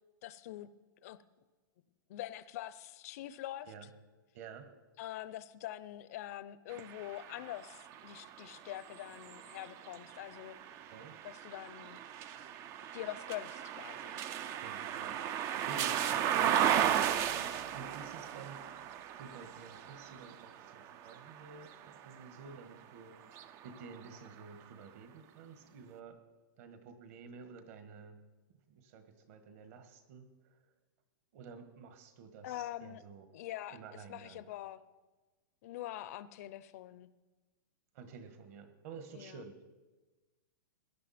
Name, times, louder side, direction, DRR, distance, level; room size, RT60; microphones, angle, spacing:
voice 1, 0.2-0.7 1.0-1.2 2.1-3.7 5.0-10.6 11.2-12.0 12.9-14.2 32.4-33.0 33.3-33.8 34.1-34.8 35.6-37.1 39.1-39.4, left 14 dB, 45° left, 15 dB, 0.6 m, -44 dB
voice 2, 4.3-4.8 10.8-11.2 14.6-15.2 15.6-16.6 17.3-18.7 19.2-23.2 23.6-26.2 26.6-28.2 28.7-30.6 31.3-33.3 33.7-34.4 37.9-39.6, right 5 dB, 45° right, 9 dB, 1.5 m, -51 dB
sound 1, 6.7-22.6 23.2-24.4, right 10 dB, 25° right, 0.5 m, -36 dB
18.5 x 11.0 x 4.3 m, 1.2 s
hypercardioid pair, 155°, 11 cm